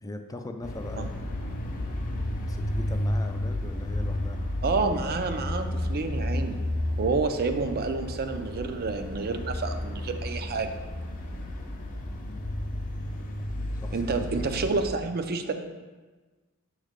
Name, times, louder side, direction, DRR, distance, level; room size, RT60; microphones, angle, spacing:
voice 1, 0.0-1.5 2.3-4.4 12.0-12.4 13.0-13.2 13.8-14.2, left 2 dB, 15° left, 6 dB, 0.4 m, -41 dB
sound 1, 0.6-14.9, left 1 dB, 40° left, 0.8 m, -32 dB
voice 2, 4.6-6.6 7.0-10.8 13.9-15.5, right 4 dB, 45° right, 7 dB, 0.5 m, -29 dB
7.2 x 3.2 x 5.1 m, 1.3 s
head